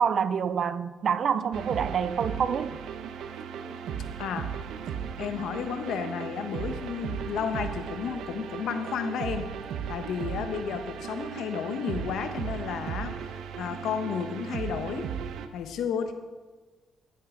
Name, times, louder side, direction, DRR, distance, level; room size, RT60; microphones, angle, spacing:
voice 1, 0.0-2.8, right 7 dB, 55° right, 0.5 m, -27 dB
sound 1, 1.5-15.5, right 7 dB, 80° right, 0.8 m, -36 dB
voice 2, 4.2-4.5 5.2-9.5 9.9-15.1 15.5-16.1, left 7 dB, 75° left, 1.0 m, -32 dB
14.5 x 8.4 x 3.8 m
cardioid pair, 90°, 0 cm